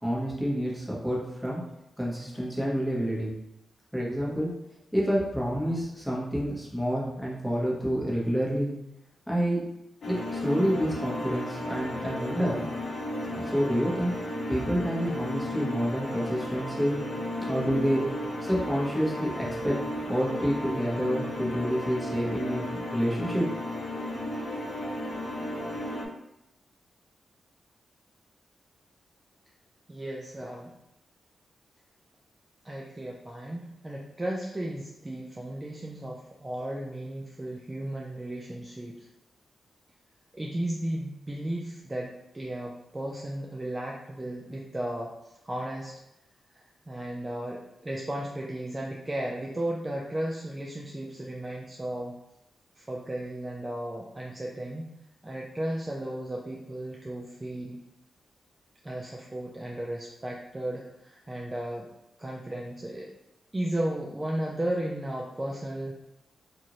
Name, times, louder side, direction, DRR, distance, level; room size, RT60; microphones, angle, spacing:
voice 1, 0.0-1.6 2.0-3.3 3.9-4.5 4.9-8.7 9.3-9.7 10.0-10.1 10.4-12.6 13.3-14.1 14.5-17.0 17.5-18.0 18.4-19.8 20.1-23.4, equal, ahead, -5 dB, 1.1 m, -28 dB
sound 1, 10.0-26.1, left 1 dB, 60° left, 0.6 m, -34 dB
voice 2, 29.9-30.7 32.6-39.1 40.3-45.9 46.5-52.1 52.8-54.9 55.2-57.8 58.8-61.9 62.2-63.1 63.5-65.9, right 1 dB, 20° right, -2 dB, 0.4 m, -35 dB
2.6 x 2.5 x 3.0 m, 0.88 s
cardioid pair, 65°, 0 cm